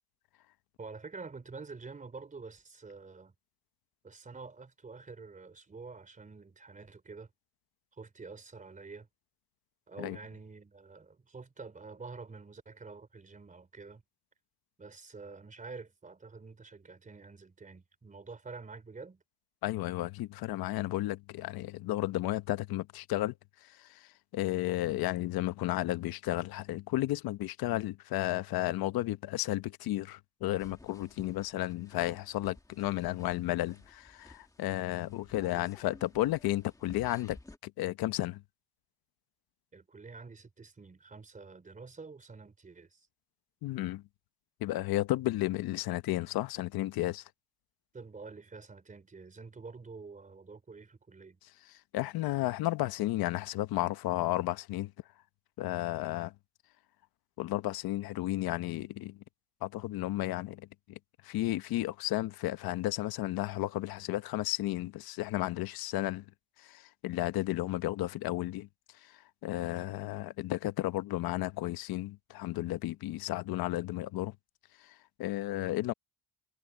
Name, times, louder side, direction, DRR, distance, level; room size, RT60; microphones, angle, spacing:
voice 1, 0.8-3.3 4.0-7.3 7.9-9.1 9.9-14.0 14.8-19.2 39.7-43.1 47.9-51.4, right 4 dB, 20° right, 3.6 m, -48 dB
voice 2, 19.6-23.3 23.6-37.4 37.6-38.4 43.6-44.0 44.6-47.2 51.9-54.9 55.6-56.3 57.4-59.2 59.6-61.0 61.2-66.2 66.6-68.7 69.0-74.3 74.8-75.9, left 16 dB, 75° left, 1.1 m, -33 dB
sound 1, 30.6-37.6, left 2 dB, 10° left, 1.8 m, -54 dB
cardioid pair, 125°, 37 cm